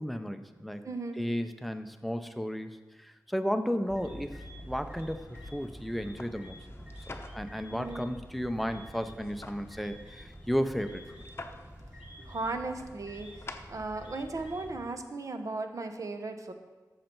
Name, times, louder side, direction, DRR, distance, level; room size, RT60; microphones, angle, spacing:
voice 1, 0.0-0.9 1.2-2.7 3.0-6.6 7.1-11.0, equal, ahead, 9 dB, 0.6 m, -34 dB
voice 2, 0.8-1.2 7.7-8.1 12.2-16.5, right 3 dB, 50° right, 7 dB, 0.8 m, -36 dB
sound 1, 3.9-14.8, equal, 20° right, 1.8 m, -48 dB
sound 2, 4.4-14.3, left 2 dB, 35° left, 0.8 m, -51 dB
13.0 x 6.6 x 4.5 m, 1.3 s
wide cardioid pair, 130°, 7 cm